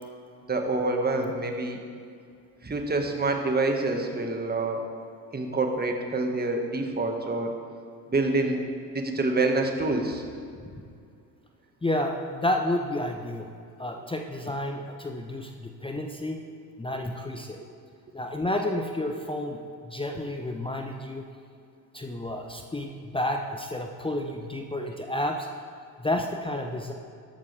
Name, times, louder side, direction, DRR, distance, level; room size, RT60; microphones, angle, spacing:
voice 1, 0.5-1.8 2.6-4.9 5.3-7.5 8.1-8.6 8.9-10.2, right 2 dB, 20° right, 3 dB, 1.8 m, -26 dB
voice 2, 11.8-13.5 13.8-16.4 16.8-17.6 18.1-21.2 21.9-25.5 26.0-26.9, left 1 dB, 10° left, 3 dB, 0.9 m, -30 dB
14.0 x 11.5 x 3.5 m, 2.3 s
hypercardioid pair, 60°, 49 cm